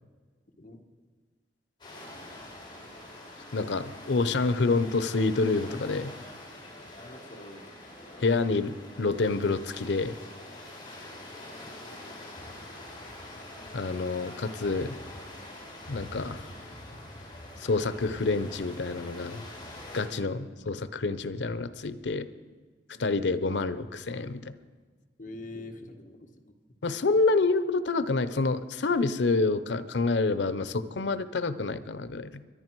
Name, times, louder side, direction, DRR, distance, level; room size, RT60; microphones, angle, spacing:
sound 1, 1.8-20.1, left 1 dB, 25° left, 3.8 m, -45 dB
voice 1, 3.5-6.1 8.2-10.1 13.7-15.0 15.9-16.4 17.6-19.5 19.9-22.3 23.0-24.5 26.8-32.3, left 3 dB, 85° left, 14 dB, 0.7 m, -27 dB
voice 2, 7.0-7.7 20.1-20.6 22.9-23.4 25.2-26.3, left 2 dB, 45° left, 3 dB, 1.4 m, -45 dB
22.0 x 11.0 x 4.6 m, 1.5 s
head